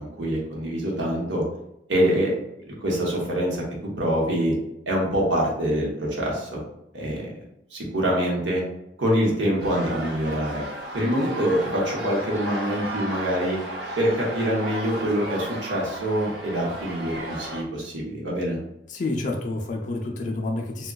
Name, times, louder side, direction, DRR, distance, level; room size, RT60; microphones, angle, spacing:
voice 1, 0.0-1.4 1.9-2.3 2.8-3.6 4.0-4.5 4.9-6.6 6.9-7.3 7.7-8.6 9.0-10.6 10.9-13.6 14.0-18.6, equal, 85° right, -2 dB, 0.9 m, -25 dB
sound 1, 9.6-17.6, right 1 dB, 60° right, 0.6 m, -34 dB
voice 2, 18.9-20.9, left 2 dB, 45° left, 0 dB, 0.4 m, -29 dB
3.6 x 2.2 x 2.2 m, 0.84 s
head